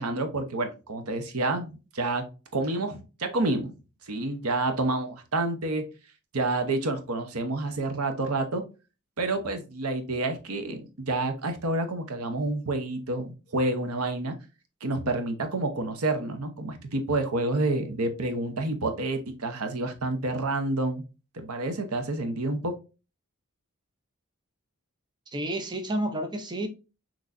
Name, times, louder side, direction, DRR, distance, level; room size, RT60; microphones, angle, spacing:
voice 1, 0.0-3.7 4.1-5.9 6.3-8.6 9.2-14.3 14.8-21.0 21.3-22.7, right 2 dB, 85° right, 0.9 m, -29 dB
voice 2, 25.3-26.7, right 1 dB, 20° right, 0.6 m, -30 dB
6.1 x 3.1 x 2.6 m
head